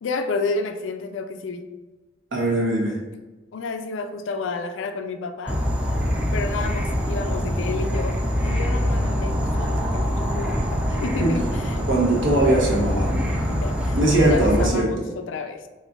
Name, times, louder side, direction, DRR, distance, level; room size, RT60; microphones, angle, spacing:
voice 1, 0.0-1.7 3.5-5.6 6.3-11.9 13.5-15.7, left 4 dB, 75° left, 8 dB, 0.4 m, -31 dB
voice 2, 2.3-3.0 11.2-11.3 11.9-13.3 13.9-15.1, right 1 dB, 75° right, -2 dB, 1.1 m, -21 dB
Insect / Frog, 5.5-14.7, equal, 5° right, 0.5 m, -24 dB
4.2 x 3.7 x 2.4 m, 1.2 s
head